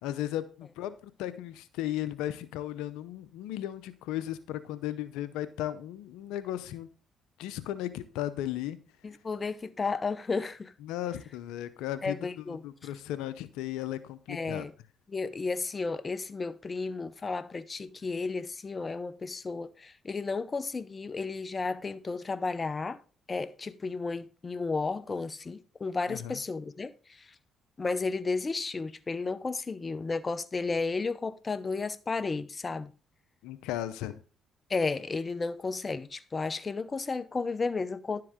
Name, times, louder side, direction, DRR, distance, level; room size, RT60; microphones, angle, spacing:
voice 1, 0.0-6.9 7.4-8.8 10.8-12.1 12.5-14.7 26.1-26.4 33.4-34.2, left 13 dB, 85° left, 0.6 m, -35 dB
voice 2, 9.0-10.7 12.0-12.6 14.3-14.7 15.1-23.0 23.3-27.2 27.8-32.9 34.7-38.2, left 4 dB, 35° left, 0.7 m, -33 dB
11.0 x 7.6 x 3.6 m
supercardioid pair, 65°, 0 cm